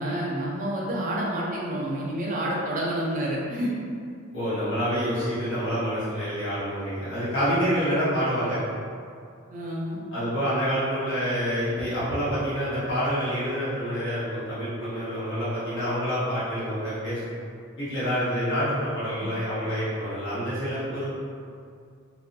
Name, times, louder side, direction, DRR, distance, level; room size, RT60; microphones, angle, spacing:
voice 1, 0.0-3.7 9.5-10.0 19.2-19.3, right 1 dB, 40° right, -5 dB, 0.5 m, -29 dB
voice 2, 4.3-8.6 10.1-17.3 17.8-21.1, equal, 60° left, -11 dB, 1.1 m, -27 dB
2.5 x 2.1 x 2.6 m, 2.3 s
head